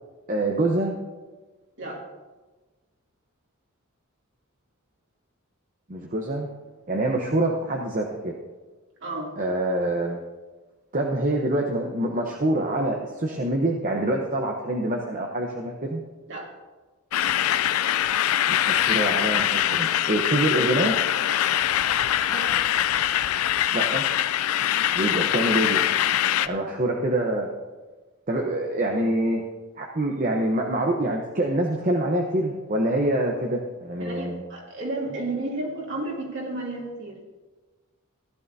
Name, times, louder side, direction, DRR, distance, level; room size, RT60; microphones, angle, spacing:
voice 1, 0.3-0.9 5.9-6.5 6.9-8.3 9.4-10.2 10.9-16.0 18.5-21.0 23.7-24.0 24.9-25.8 26.4-27.5 28.3-29.4 29.8-34.4, right 1 dB, 40° right, 1 dB, 0.9 m, -25 dB
voice 2, 9.0-9.3 16.3-16.5 22.3-22.5 34.0-37.2, right 2 dB, 55° right, -3 dB, 2.9 m, -32 dB
sound 1, 17.1-26.5, left 11 dB, 80° left, 0.4 m, -23 dB
15.5 x 11.5 x 2.7 m, 1.2 s
head